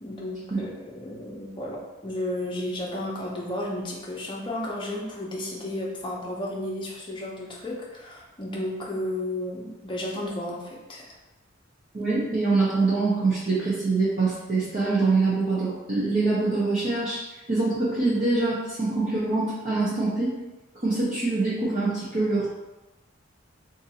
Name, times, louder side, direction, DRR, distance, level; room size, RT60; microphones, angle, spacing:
voice 1, 0.0-11.1, left 1 dB, 25° left, -4 dB, 0.6 m, -33 dB
voice 2, 11.9-17.2 17.5-20.4 20.8-22.5, right 3 dB, 40° right, -10 dB, 0.7 m, -24 dB
2.6 x 2.6 x 4.1 m, 1.1 s
head